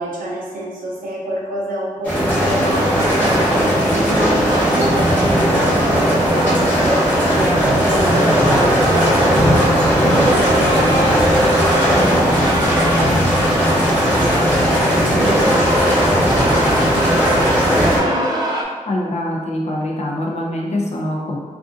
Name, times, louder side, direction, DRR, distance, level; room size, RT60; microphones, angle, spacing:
voice 1, 0.0-14.7 15.2-18.5, right 1 dB, 90° right, -4 dB, 0.7 m, -28 dB
sound 1, 2.0-18.0, equal, 10° left, 1.0 m, -17 dB
sound 2, 2.7-18.6, right 1 dB, 30° right, 0.5 m, -24 dB
voice 2, 18.9-21.4, left 1 dB, 55° left, -2 dB, 0.5 m, -23 dB
2.5 x 2.5 x 2.4 m, 1.5 s
cardioid pair, 75°, 14 cm